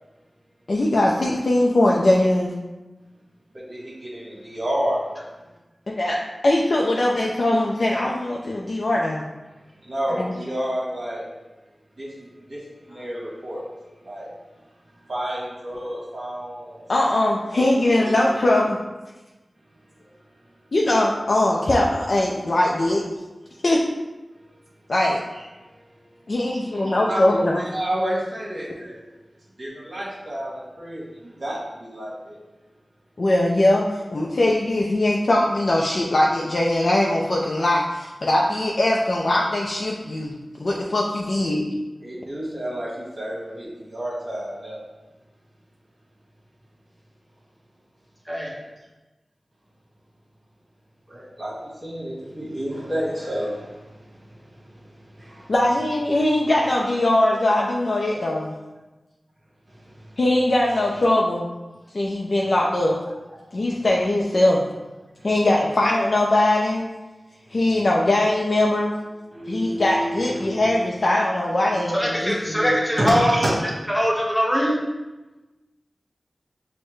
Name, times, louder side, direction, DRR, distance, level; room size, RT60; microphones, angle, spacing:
voice 1, 0.7-2.5 6.0-6.2 6.4-9.3 10.2-10.3 16.9-18.8 20.7-23.0 23.6-23.8 24.9-25.2 26.3-27.6 33.2-41.7 55.5-58.5 60.2-61.5 61.9-63.0 63.5-64.7 65.2-66.9 67.5-69.0 69.4-72.8, left 1 dB, 65° left, -2 dB, 0.4 m, -21 dB
voice 2, 3.5-5.2 9.7-11.2 12.0-13.7 14.0-14.3 15.0-16.9 17.5-18.3 20.4-20.5 25.3-26.1 26.5-29.0 29.6-32.4 42.0-44.8 51.1-55.5 59.7-60.2 62.9-63.0 63.7-63.9 65.2-65.3 67.4-67.8 69.3-70.7 73.0-73.7, equal, 60° right, -8 dB, 1.4 m, -30 dB
voice 3, 48.3-48.6 71.9-73.3 73.9-74.8, equal, 5° left, -4 dB, 1.0 m, -21 dB
6.3 x 2.1 x 3.1 m, 1.1 s
wide cardioid pair, 75°, 0 cm